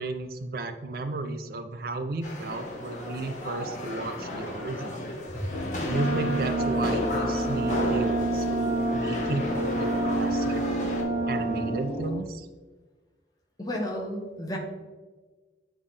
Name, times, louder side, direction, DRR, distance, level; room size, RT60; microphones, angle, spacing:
voice 1, 0.0-5.1 5.8-10.6 11.3-12.5, right 2 dB, 55° right, 9 dB, 0.4 m, -33 dB
sound 1, 2.2-11.0, left 1 dB, 45° left, 1.2 m, -35 dB
sound 2, 5.5-12.2, left 2 dB, 75° left, 0.6 m, -33 dB
Wind instrument woodwind instrument, 5.8-11.9, right 3 dB, 5° left, 1.5 m, -29 dB
voice 2, 13.6-14.6, equal, 20° left, 0 dB, 1.1 m, -32 dB
8.5 x 3.6 x 3.3 m, 1.3 s
head